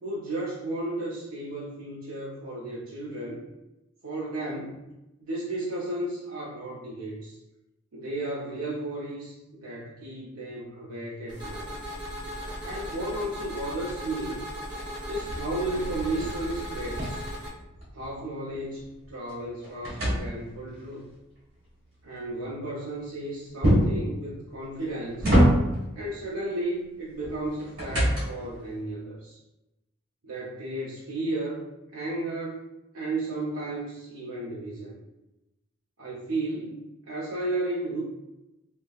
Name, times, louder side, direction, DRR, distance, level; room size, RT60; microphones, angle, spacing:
voice 1, 0.0-3.4 4.0-4.8 5.2-7.4 7.9-11.7 12.6-14.4 15.1-17.2 17.9-21.1 22.0-25.3 26.0-29.4 30.2-31.6 31.9-32.7 32.9-35.0 36.0-38.0, right 1 dB, 85° right, -5 dB, 0.6 m, -33 dB
sound 1, 11.3-17.5, equal, 20° right, 0.8 m, -37 dB
sound 2, 15.2-18.1 18.5-20.8 23.6-24.1 24.7-25.9 27.2-28.6, equal, 65° right, 1.5 m, -25 dB
5.0 x 2.0 x 2.3 m, 0.95 s
head